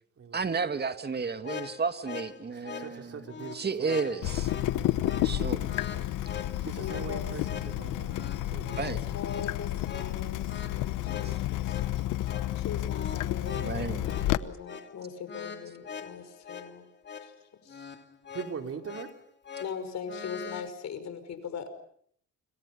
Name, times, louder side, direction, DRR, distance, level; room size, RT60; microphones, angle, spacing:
voice 1, 0.3-3.3 3.5-4.5 5.2-6.1 8.8-9.0 11.2-11.4 13.6-14.2, right 5 dB, 35° right, 9 dB, 2.2 m, -32 dB
sound 1, 1.2-20.7, left 6 dB, 35° left, 2.6 m, -43 dB
voice 2, 2.5-4.3 4.7-5.3 6.6-9.2 18.3-19.1, right 6 dB, 50° right, 5 dB, 3.9 m, -42 dB
Water tap faucet / Drip, 4.2-14.4, left 14 dB, 90° left, 1.0 m, -31 dB
voice 3, 6.8-7.2 8.8-11.8 12.6-16.9 17.2-17.3 17.6-17.9 19.6-21.7, left 7 dB, 65° left, 10 dB, 5.5 m, -40 dB
29.5 x 27.0 x 5.7 m, 0.64 s
cardioid pair, 90°, 30 cm